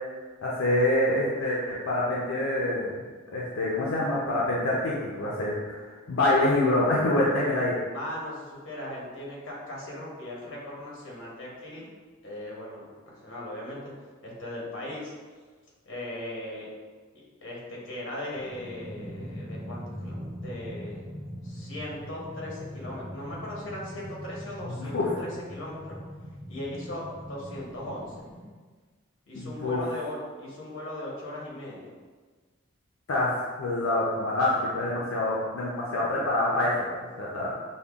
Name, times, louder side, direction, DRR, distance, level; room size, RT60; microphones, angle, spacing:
voice 1, 0.4-2.9 3.3-7.8 24.7-25.1 29.3-29.8 33.1-37.5, left 1 dB, 85° left, -5 dB, 0.5 m, -26 dB
voice 2, 7.9-11.9 12.2-13.9 14.2-15.1 15.8-16.7 17.4-21.0 21.4-26.0 26.5-28.3 29.3-31.9, left 1 dB, 60° left, -4 dB, 0.9 m, -38 dB
sound 1, 18.3-28.5, equal, 5° right, 0.9 m, -41 dB
5.3 x 2.1 x 2.3 m, 1.4 s
head